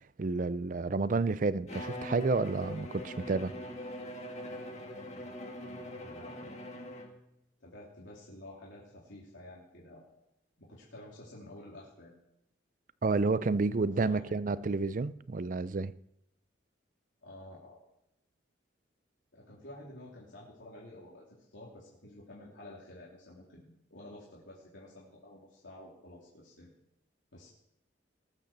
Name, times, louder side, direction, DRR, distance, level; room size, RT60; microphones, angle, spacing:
voice 1, 0.2-3.5 13.0-15.9, right 3 dB, 45° right, 0.4 m, -30 dB
Bowed string instrument, 1.7-7.3, left 1 dB, 35° left, 1.7 m, -42 dB
voice 2, 5.9-6.7 7.6-10.0 10.6-12.1 13.8-14.7 17.2-17.8 19.3-26.7 27.3-27.5, left 1 dB, 85° left, 2.9 m, -51 dB
19.0 x 6.6 x 6.6 m
head